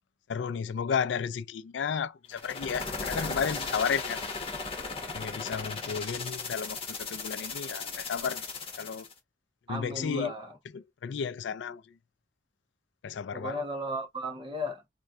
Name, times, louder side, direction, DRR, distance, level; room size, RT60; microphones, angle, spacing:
voice 1, 0.3-4.2 5.1-8.5 8.8-9.1 9.7-10.3 10.7-12.0 13.0-13.6, left 6 dB, 70° left, 0.4 m, -33 dB
sound 1, 2.3-9.1, left 4 dB, 30° left, 1.1 m, -36 dB
voice 2, 9.7-10.5 13.3-14.9, left 1 dB, 30° right, 1.0 m, -35 dB
4.3 x 2.2 x 2.4 m
head